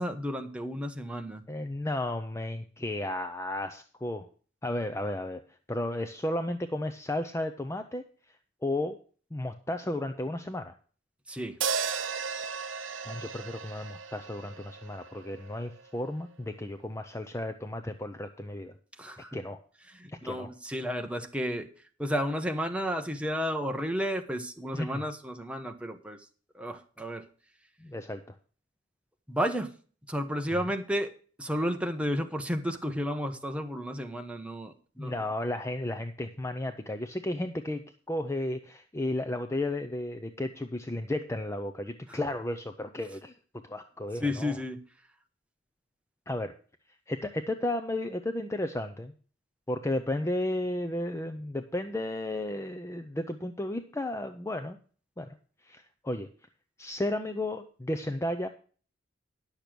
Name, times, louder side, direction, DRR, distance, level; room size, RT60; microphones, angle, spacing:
voice 1, 0.0-1.4 11.3-11.6 19.0-19.4 19.9-21.7 22.0-26.2 26.5-27.3 29.3-29.7 30.1-31.1 31.4-35.1 42.1-42.2 44.2-44.8, equal, 5° right, 6 dB, 0.9 m, -32 dB
voice 2, 1.5-4.3 4.6-8.1 8.6-9.0 9.3-10.7 13.1-18.7 19.3-19.6 20.2-20.5 24.7-25.0 27.8-28.3 30.5-30.7 35.0-37.8 38.1-43.3 43.6-44.6 46.3-46.5 47.1-49.1 49.7-54.8 55.2-55.4 55.6-56.3 56.8-58.5, left 1 dB, 15° left, 8 dB, 0.5 m, -33 dB
sound 1, 11.6-15.9, right 6 dB, 70° right, 0.7 m, -35 dB
10.5 x 6.9 x 6.0 m, 0.41 s
head